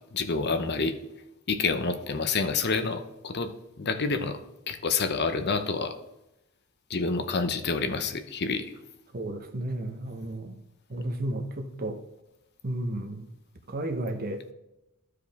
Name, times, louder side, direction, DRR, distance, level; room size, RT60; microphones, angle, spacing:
voice 1, 0.1-1.0 1.5-3.5 3.8-4.4 4.7-5.9 6.9-8.7, left 4 dB, 50° left, 9 dB, 0.7 m, -28 dB
voice 2, 9.1-10.5 10.9-12.0 12.6-13.3 13.7-14.4, right 1 dB, 45° right, 5 dB, 0.9 m, -32 dB
13.0 x 4.9 x 3.5 m, 0.91 s
head